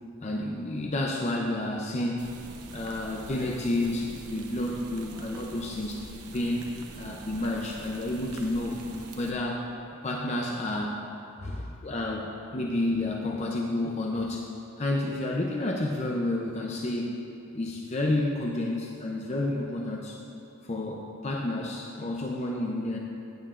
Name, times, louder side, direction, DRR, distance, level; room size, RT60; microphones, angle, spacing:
voice 1, 0.2-2.3 2.7-6.0 6.3-6.7 7.0-8.8 9.2-9.7 10.0-11.0 11.4-14.5 14.8-17.2 17.5-20.2 20.6-23.0, left 1 dB, 30° left, -1 dB, 0.5 m, -30 dB
sound 1, 2.2-9.3, right 2 dB, 85° right, 0.8 m, -45 dB
14.5 x 8.7 x 2.5 m, 2.6 s
head